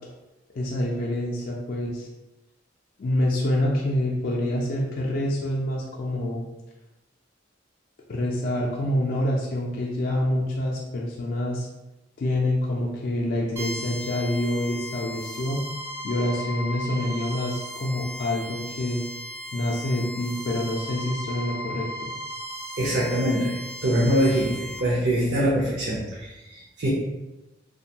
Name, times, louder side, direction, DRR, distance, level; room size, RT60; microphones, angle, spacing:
voice 1, 0.5-2.1 3.0-6.4 8.1-11.7 12.2-15.6 16.0-19.0 19.5-22.1, left 1 dB, 50° left, -3 dB, 0.3 m, -26 dB
sound 1, 13.6-24.8, equal, 15° right, 0.4 m, -36 dB
voice 2, 22.8-26.9, equal, 60° right, -7 dB, 0.6 m, -24 dB
2.5 x 2.2 x 2.8 m, 1.0 s
head